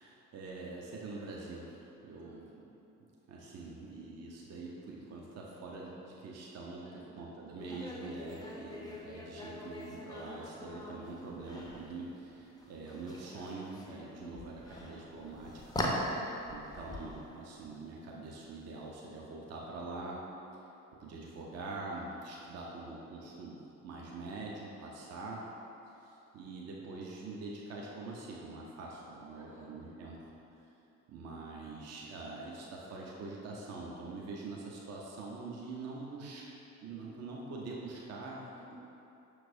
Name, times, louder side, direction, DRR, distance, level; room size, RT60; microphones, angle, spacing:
voice 1, 0.0-2.4 3.3-15.8 16.5-20.2 21.0-25.4 26.0-30.3 31.1-36.4 36.8-38.8, right 3 dB, 40° right, -3 dB, 0.6 m, -44 dB
voice 2, 2.1-3.0 6.8-7.3 25.0-25.5 29.3-30.0 38.5-38.8, right 1 dB, 75° right, -9 dB, 1.1 m, -59 dB
sound 1, 7.6-18.9, left 1 dB, 10° left, 0.5 m, -42 dB
5.8 x 3.1 x 2.6 m, 2.9 s
figure-of-eight pair, 40°, 42 cm